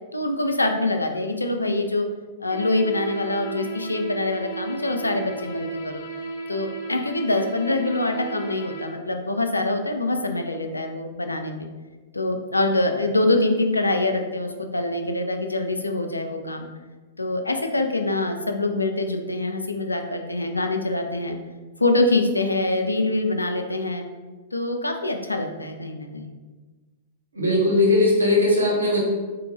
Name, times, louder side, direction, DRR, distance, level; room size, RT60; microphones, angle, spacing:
voice 1, 0.1-2.1 2.4-6.0 6.5-11.7 12.1-16.7 17.2-21.4 21.8-24.1 24.5-26.3, left 2 dB, 85° left, 5 dB, 0.4 m, -24 dB
sound 1, 2.5-8.9, right 3 dB, 60° left, 1.2 m, -34 dB
voice 2, 27.3-29.0, left 2 dB, 80° right, -3 dB, 1.1 m, -19 dB
3.7 x 2.7 x 2.8 m, 1.3 s
figure-of-eight pair, 105°, 0 cm